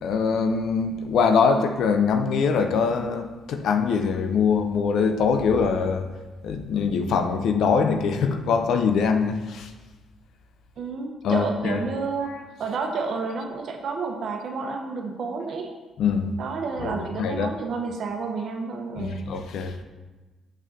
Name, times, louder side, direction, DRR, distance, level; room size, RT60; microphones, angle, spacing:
voice 1, 0.0-6.1 6.4-9.7 11.2-11.8 16.0-16.3 16.8-17.5 19.0-19.8, left 5 dB, 75° left, 7 dB, 0.5 m, -23 dB
voice 2, 10.8-12.3 12.6-15.7 16.4-19.2, right 4 dB, 65° right, 3 dB, 0.9 m, -30 dB
6.3 x 6.2 x 2.7 m, 1.2 s
cardioid pair, 90°, 0 cm